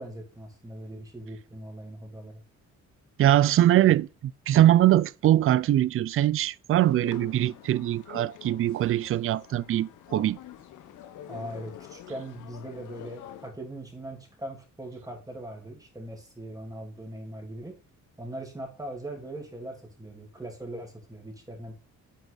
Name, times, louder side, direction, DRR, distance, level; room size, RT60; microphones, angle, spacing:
voice 1, 0.0-2.4 11.3-17.7 18.2-21.7, right 1 dB, 10° right, 2.9 m, -40 dB
voice 2, 3.2-10.4, right 13 dB, 45° right, 0.4 m, -22 dB
sound 1, 6.7-13.5, left 11 dB, 85° left, 1.1 m, -46 dB
9.2 x 4.6 x 4.0 m
cardioid pair, 90°, 30 cm